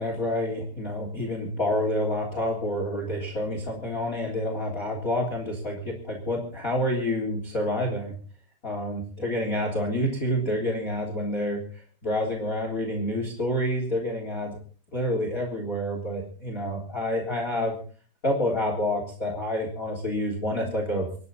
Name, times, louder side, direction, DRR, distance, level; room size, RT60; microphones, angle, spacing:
voice 1, 0.0-8.1 8.6-11.6 12.0-14.5 14.9-17.7 18.2-21.1, left 1 dB, 20° left, 2 dB, 3.3 m, -28 dB
27.5 x 11.0 x 4.1 m, 0.43 s
omnidirectional pair, 5.4 m